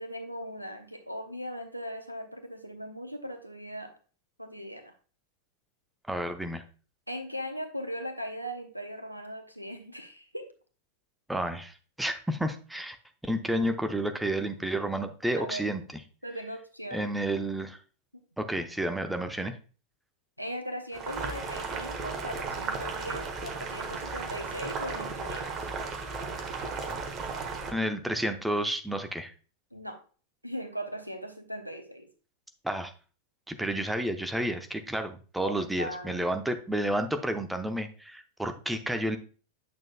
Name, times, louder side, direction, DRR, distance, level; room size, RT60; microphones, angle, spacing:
voice 1, 0.0-3.9 4.4-4.9 7.1-10.5 15.4-15.6 16.2-17.1 20.4-25.5 29.7-30.0 30.4-32.1 35.4-36.3, equal, 90° right, 6 dB, 1.0 m, -39 dB
voice 2, 6.1-6.6 11.3-13.0 13.2-15.8 16.9-17.8 18.4-19.6 27.7-29.3 32.6-32.9 33.5-39.2, right 1 dB, 5° right, 7 dB, 0.7 m, -31 dB
Boiling, 20.9-27.7, right 4 dB, 30° right, 1.3 m, -35 dB
8.5 x 6.4 x 2.2 m, 0.38 s
figure-of-eight pair, 90°, 0 cm